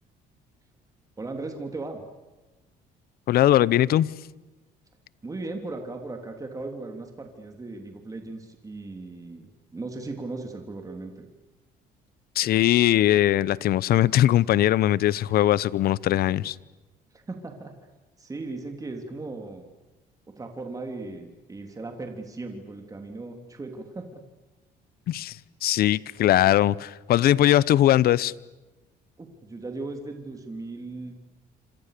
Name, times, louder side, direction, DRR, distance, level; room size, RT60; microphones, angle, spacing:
voice 1, 1.2-2.0 5.2-11.3 17.1-17.7 18.2-19.7 20.3-24.2 29.2-31.1, right 3 dB, 20° right, 3.3 m, -37 dB
voice 2, 3.3-4.1 12.4-16.6 25.1-28.3, left 13 dB, 65° left, 0.8 m, -20 dB
28.5 x 26.5 x 6.8 m
cardioid pair, 110°, 17 cm